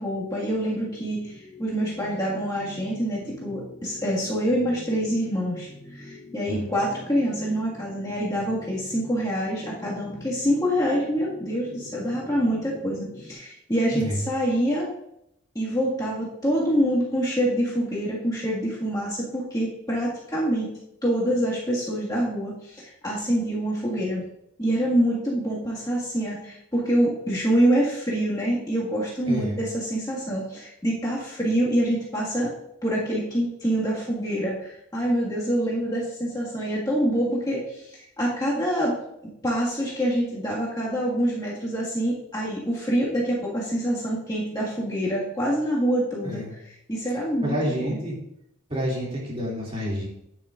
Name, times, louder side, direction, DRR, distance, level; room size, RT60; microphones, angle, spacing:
voice 1, 0.0-14.9 15.6-20.7 21.0-24.2 24.6-32.5 32.8-38.9 39.2-48.0, equal, 20° left, -6 dB, 1.7 m, -26 dB
sound 1, 0.8-13.3, left 1 dB, 45° left, 3.2 m, -45 dB
voice 2, 29.3-29.6 46.2-46.5 47.4-48.2 48.7-50.1, equal, 25° right, -4 dB, 2.5 m, -28 dB
9.6 x 8.9 x 2.5 m, 0.79 s
head